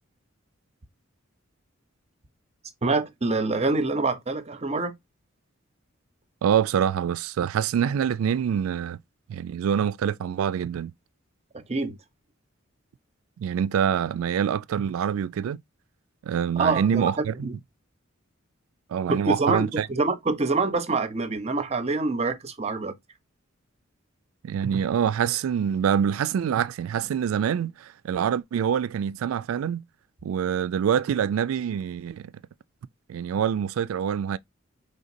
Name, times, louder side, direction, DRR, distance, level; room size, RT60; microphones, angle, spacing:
voice 1, 2.8-4.9 11.7-12.0 16.6-17.1 17.4-17.6 19.1-22.9, right 3 dB, 30° right, 0.6 m, -25 dB
voice 2, 6.4-9.0 9.3-10.9 13.4-15.6 16.2-17.5 18.9-19.9 24.4-29.8 30.2-32.3 33.1-34.4, right 8 dB, 85° right, 0.3 m, -25 dB
5.0 x 3.5 x 2.6 m
head